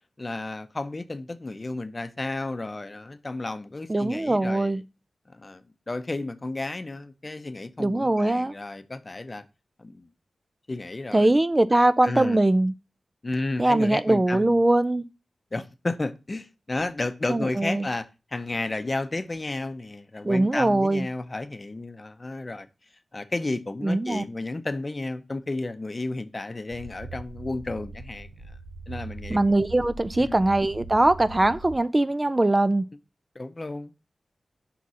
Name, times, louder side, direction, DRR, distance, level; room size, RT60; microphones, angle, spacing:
voice 1, 0.2-4.8 5.3-9.4 9.8-10.1 10.7-11.3 11.7-12.4 13.2-14.6 15.5-22.7 23.1-28.3 28.9-29.4 30.2-30.4 33.3-33.9, left 2 dB, 35° left, 0.6 m, -32 dB
voice 2, 3.9-4.8 7.8-8.5 11.1-12.7 13.6-15.0 17.3-17.9 20.2-21.1 23.8-24.2 29.3-32.9, right 2 dB, 25° right, 0.3 m, -22 dB
sound 1, 26.7-31.8, right 3 dB, 80° right, 1.0 m, -41 dB
5.8 x 4.2 x 6.1 m
wide cardioid pair, 80°, 0 cm